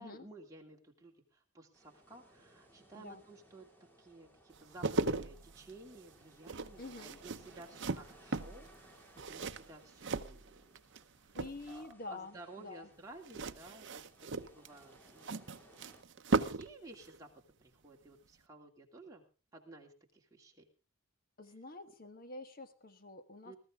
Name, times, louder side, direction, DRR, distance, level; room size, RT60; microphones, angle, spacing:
voice 1, 0.0-3.7 4.0-10.7 11.2-11.4 11.7-14.0 14.3-15.6 16.3-17.3 17.6-19.2 19.5-20.6 23.4-23.6, right 2 dB, 15° right, -1 dB, 2.6 m, -54 dB
sound 1, 1.7-16.0, right 1 dB, 10° left, 2.4 m, -63 dB
sound 2, 4.5-11.0 11.3-11.9 13.2-16.7 17.0-17.2, right 3 dB, 55° right, 0.8 m, -38 dB
voice 2, 6.8-7.2 11.3-12.9 21.4-23.5, left 2 dB, 40° left, 10 dB, 1.3 m, -48 dB
21.0 x 13.5 x 3.7 m, 0.33 s
head